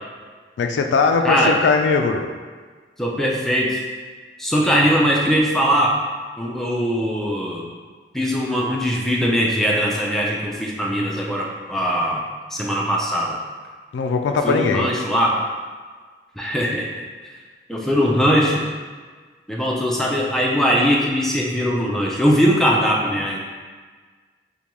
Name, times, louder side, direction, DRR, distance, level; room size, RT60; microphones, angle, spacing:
voice 1, 0.6-2.3 13.9-14.9, left 4 dB, 80° left, 6 dB, 0.3 m, -19 dB
voice 2, 1.2-1.5 3.0-3.8 4.4-6.0 6.4-7.7 8.1-12.2 12.5-13.4 14.4-15.4 16.4-17.0 17.7-18.6 19.5-23.4, equal, ahead, -3 dB, 0.4 m, -20 dB
5.1 x 2.2 x 3.0 m, 1.5 s
head